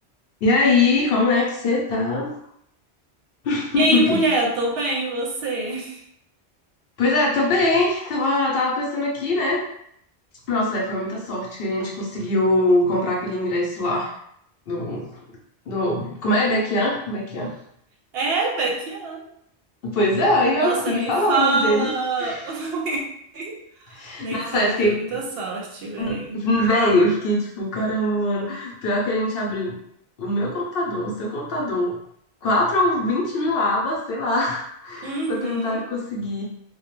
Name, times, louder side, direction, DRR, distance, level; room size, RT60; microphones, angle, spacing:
voice 1, 0.4-2.3 3.4-4.2 7.0-9.6 10.5-14.1 14.7-15.2 15.7-17.5 19.8-21.9 22.2-22.5 23.9-25.2 26.0-29.7 30.2-32.0 32.4-36.4, left 2 dB, 65° left, -2 dB, 0.7 m, -22 dB
voice 2, 3.8-6.0 18.1-19.2 20.6-23.0 23.3-23.6 23.9-26.4 35.0-35.8, right 3 dB, 70° right, 0 dB, 0.7 m, -25 dB
2.2 x 2.1 x 2.9 m, 0.73 s
omnidirectional pair, 1.1 m